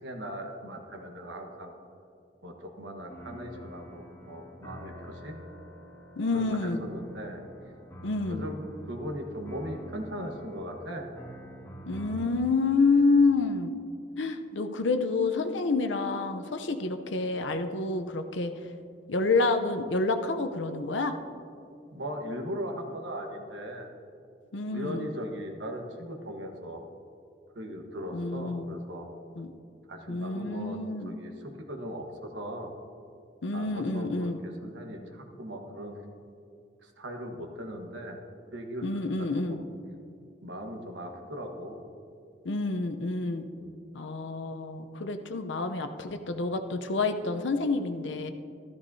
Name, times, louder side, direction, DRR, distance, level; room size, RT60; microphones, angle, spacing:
voice 1, 0.0-1.7 2.4-5.4 6.3-7.4 8.3-11.1 21.9-23.9 24.7-26.8 27.5-29.1 29.9-30.8 31.1-32.7 33.5-36.0 36.8-38.2 38.5-39.6 40.4-41.8 43.6-43.7, equal, 80° right, 2 dB, 1.3 m, -39 dB
sound 1, 3.1-12.7, equal, 15° left, 1.5 m, -46 dB
voice 2, 6.2-6.9 8.0-8.4 11.9-13.7 14.2-18.5 19.1-21.1 24.5-25.1 28.1-28.8 29.4-29.5 30.1-31.1 33.4-34.4 38.8-39.6 42.4-43.5 43.9-48.3, left 3 dB, 90° left, 8 dB, 0.7 m, -28 dB
13.5 x 13.0 x 2.7 m, 2.5 s
head